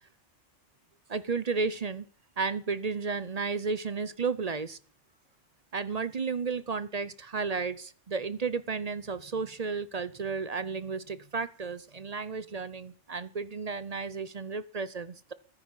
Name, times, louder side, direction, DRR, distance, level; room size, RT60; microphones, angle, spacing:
voice 1, 1.1-2.1 2.4-4.8 5.7-15.3, right 4 dB, 40° right, 16 dB, 0.7 m, -33 dB
13.5 x 10.0 x 7.4 m, 0.43 s
omnidirectional pair, 1.3 m